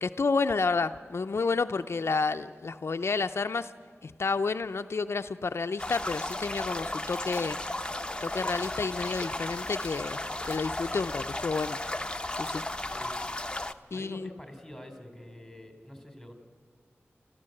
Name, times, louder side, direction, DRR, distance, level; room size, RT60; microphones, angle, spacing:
voice 1, 0.0-3.7 4.0-7.6 8.2-10.2 10.4-11.8 12.4-12.6 13.9-14.3, left 4 dB, 70° left, 9 dB, 0.5 m, -30 dB
sound 1, 5.8-13.7, left 1 dB, 20° left, 0.8 m, -34 dB
voice 2, 13.9-16.3, left 1 dB, ahead, 5 dB, 3.5 m, -46 dB
29.0 x 13.5 x 7.7 m, 2.2 s
wide cardioid pair, 70°, 4 cm